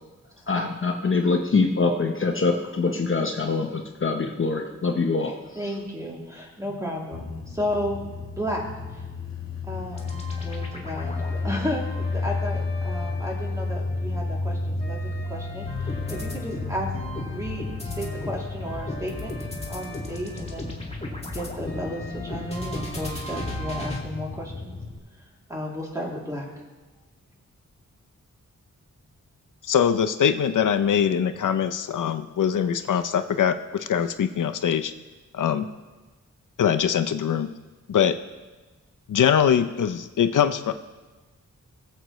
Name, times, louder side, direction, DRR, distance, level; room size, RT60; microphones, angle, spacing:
voice 1, 0.5-5.3, left 4 dB, 40° left, 3 dB, 0.9 m, -24 dB
voice 2, 5.2-8.0 8.3-8.6 8.9-9.0 9.6-11.2 11.4-15.0 15.3-16.9 17.3-19.3 19.7-20.8 21.3-24.8 25.5-26.5, equal, 10° right, -4 dB, 2.7 m, -33 dB
sound 1, 7.1-25.0, left 3 dB, 60° left, 2.8 m, -33 dB
sound 2, 9.9-14.0 14.5-24.0, left 1 dB, 20° left, 2.1 m, -36 dB
voice 3, 29.7-34.9 35.3-35.7 36.6-37.5 37.9-38.1 39.1-40.7, left 8 dB, 80° left, 9 dB, 0.6 m, -22 dB
20.5 x 7.7 x 3.1 m, 1.2 s
wide cardioid pair, 115°, 31 cm